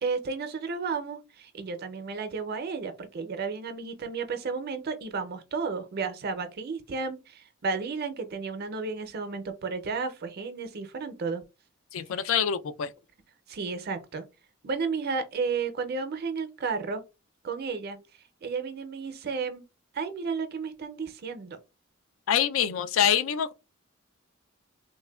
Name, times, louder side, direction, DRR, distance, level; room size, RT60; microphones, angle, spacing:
voice 1, 0.0-11.4 13.5-14.2 14.6-17.0 17.4-18.0 18.4-19.6 19.9-21.6, right 4 dB, 50° right, 0.4 m, -32 dB
voice 2, 11.9-12.9 22.3-23.5, left 9 dB, 70° left, 0.3 m, -25 dB
3.2 x 2.1 x 2.2 m
head